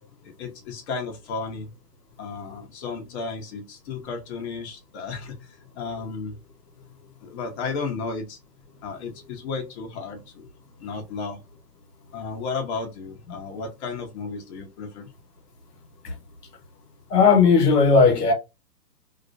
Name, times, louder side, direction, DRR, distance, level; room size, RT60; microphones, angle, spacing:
voice 1, 0.2-1.7 2.2-6.3 7.2-8.4 8.8-10.5 10.8-11.4 12.1-15.1, left 4 dB, 40° left, 0.8 m, -33 dB
voice 2, 17.1-18.3, left 5 dB, 70° left, 0.9 m, -16 dB
2.5 x 2.0 x 2.4 m
hypercardioid pair, 135°, 50 cm